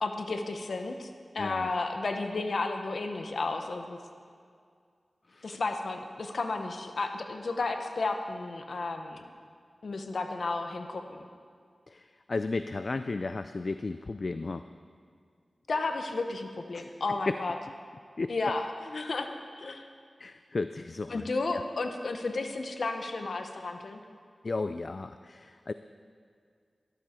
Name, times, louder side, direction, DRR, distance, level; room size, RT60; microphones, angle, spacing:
voice 1, 0.0-4.0 5.4-9.2 9.8-11.3 15.7-17.5 18.3-19.3 19.6-19.9 21.1-24.0, left 3 dB, 75° left, 6 dB, 0.9 m, -33 dB
voice 2, 1.4-1.7 5.3-5.6 11.9-14.6 16.7-17.4 18.2-18.3 20.2-21.2 21.5-21.6 24.4-25.7, left 3 dB, 60° left, 11 dB, 0.3 m, -34 dB
13.5 x 12.0 x 4.4 m, 2.2 s
cardioid pair, 45°, 0 cm